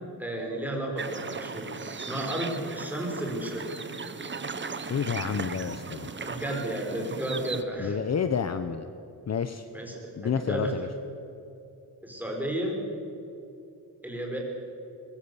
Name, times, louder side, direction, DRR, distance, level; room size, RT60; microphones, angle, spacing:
voice 1, 0.2-1.8 2.1-3.8 6.2-8.0 9.7-10.9 12.0-12.8 14.0-14.4, right 1 dB, 5° right, 0 dB, 4.9 m, -33 dB
sound 1, 1.0-7.6, right 4 dB, 30° right, 1.1 m, -37 dB
voice 2, 4.9-6.1 7.8-8.9 9.3-9.7 10.2-10.9, left 7 dB, 40° left, 10 dB, 0.8 m, -29 dB
23.5 x 20.5 x 7.0 m, 2.8 s
wide cardioid pair, 145°, 41 cm